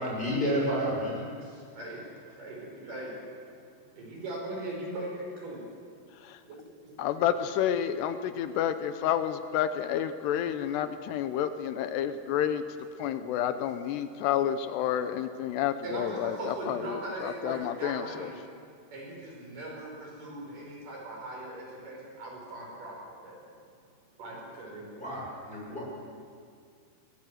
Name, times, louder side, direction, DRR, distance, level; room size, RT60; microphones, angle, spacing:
voice 1, 0.0-1.3 24.9-26.0, equal, 10° left, -4 dB, 7.2 m, -30 dB
voice 2, 1.4-3.5 3.9-5.6 6.4-7.1 13.1-13.3 15.8-18.3 18.9-23.0 23.2-23.4 24.2-25.1, right 1 dB, 50° right, -2 dB, 6.6 m, -40 dB
voice 3, 7.0-12.6 13.0-18.3, left 10 dB, 85° left, 10 dB, 2.9 m, -30 dB
22.0 x 18.5 x 7.9 m, 2.2 s
omnidirectional pair, 4.8 m